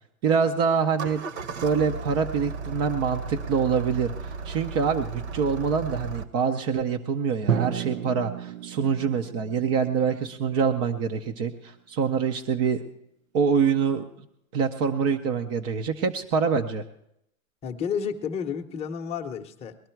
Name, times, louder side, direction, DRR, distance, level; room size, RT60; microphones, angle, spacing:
voice 1, 0.2-1.2 1.6-12.8 13.3-14.1 14.5-16.8, right 6 dB, 25° right, 5 dB, 0.5 m, -25 dB
Engine starting, 0.8-6.3, right 4 dB, 50° right, 1.2 m, -35 dB
Drum, 7.5-11.3, right 8 dB, 70° right, 0.9 m, -32 dB
voice 2, 17.6-19.8, left 7 dB, 15° left, 3 dB, 0.8 m, -31 dB
20.5 x 11.5 x 4.5 m, 0.78 s
hypercardioid pair, 140°, 42 cm